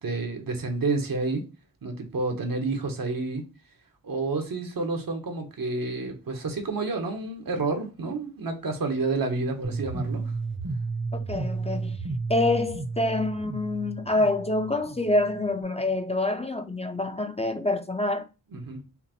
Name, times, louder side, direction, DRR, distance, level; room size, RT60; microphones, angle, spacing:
voice 1, 0.0-1.4 1.8-3.4 4.0-10.3 18.5-18.8, right 3 dB, 75° right, 1.0 m, -29 dB
sound 1, 9.6-15.6, right 4 dB, 35° right, 0.7 m, -33 dB
voice 2, 11.3-12.0 12.3-18.3, left 2 dB, 20° left, 0.4 m, -26 dB
5.6 x 2.0 x 2.9 m
wide cardioid pair, 75°, 34 cm